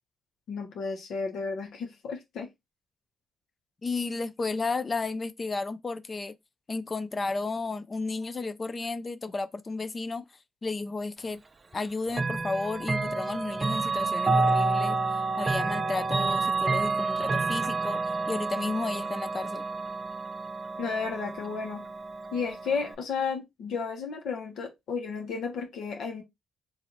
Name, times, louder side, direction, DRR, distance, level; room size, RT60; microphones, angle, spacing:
voice 1, 0.5-2.5 20.8-21.8 22.3-26.2, left 5 dB, 75° left, 0.9 m, -33 dB
voice 2, 3.8-6.4 6.7-10.2 10.6-11.4 11.7-18.0 18.3-19.7, left 3 dB, 30° left, 0.4 m, -33 dB
Chime / Clock, 12.1-23.0, right 3 dB, 30° right, 0.5 m, -29 dB
3.0 x 2.5 x 3.9 m
cardioid pair, 90°, 0 cm